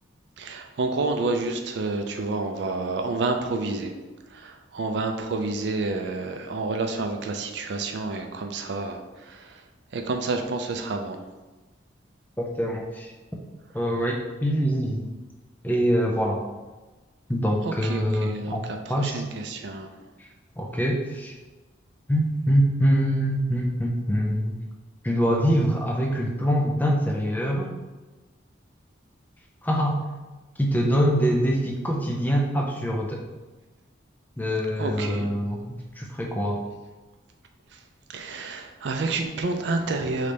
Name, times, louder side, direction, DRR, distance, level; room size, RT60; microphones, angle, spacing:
voice 1, 0.4-3.9 4.3-9.6 9.9-11.2 17.6-19.9 34.8-35.3 37.7-37.8 38.1-40.3, right 3 dB, 65° right, 5 dB, 0.4 m, -29 dB
voice 2, 12.4-13.1 13.7-15.1 15.6-16.4 17.3-18.6 18.9-19.2 20.6-21.3 22.1-24.6 25.0-27.7 29.6-30.0 30.6-33.2 34.4-36.6, equal, 10° left, -1 dB, 0.4 m, -24 dB
3.9 x 3.2 x 3.3 m, 1.2 s
head